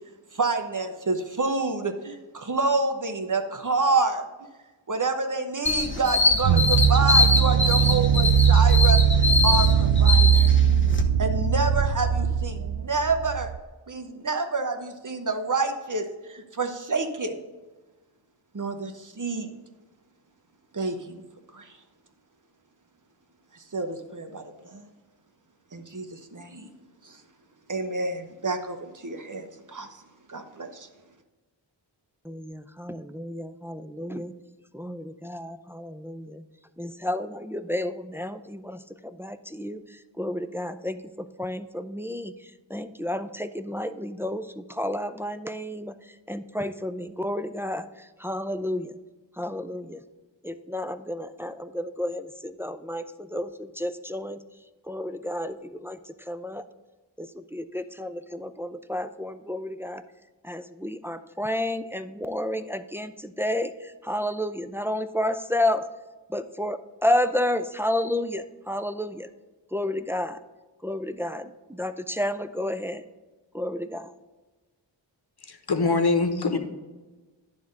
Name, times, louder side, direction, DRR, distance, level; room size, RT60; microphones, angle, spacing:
voice 1, 0.3-4.3 4.9-9.0 9.4-10.5 11.2-13.5 13.9-17.4 18.5-19.5 20.7-21.2 21.5-21.7 23.5-24.8 25.7-26.7 27.0-27.2 27.7-29.9 30.3-30.9, right 3 dB, 40° right, 6 dB, 1.0 m, -28 dB
sound 1, 5.7-11.0, left 3 dB, 25° left, 1.0 m, -24 dB
sound 2, 6.4-13.6, right 8 dB, 70° right, 0.5 m, -20 dB
voice 2, 32.2-34.3 34.7-36.4 36.8-41.0 41.4-49.0 49.4-50.0 50.4-54.4 54.9-56.6 57.2-60.0 60.4-65.8 66.3-69.3 69.7-70.4 70.8-73.0 73.5-74.1, left 1 dB, 5° right, 10 dB, 0.4 m, -31 dB
voice 3, 75.4-76.6, left 3 dB, 55° left, 7 dB, 1.0 m, -23 dB
10.0 x 3.6 x 6.4 m, 1.2 s
wide cardioid pair, 45°, 45 cm